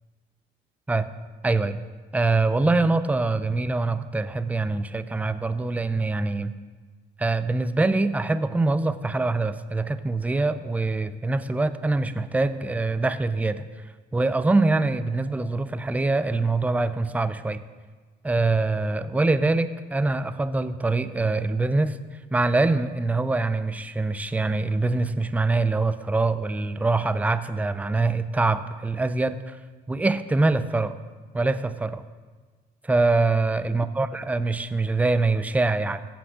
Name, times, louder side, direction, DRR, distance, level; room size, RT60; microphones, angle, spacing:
voice 1, 1.4-1.8 2.1-6.5 7.2-13.7 14.1-17.6 18.2-22.0 22.3-29.6 29.9-31.0 31.3-32.0 32.8-36.1, right 3 dB, 10° right, 13 dB, 0.4 m, -24 dB
15.5 x 6.1 x 5.0 m, 1.4 s
cardioid pair, 110°, 17 cm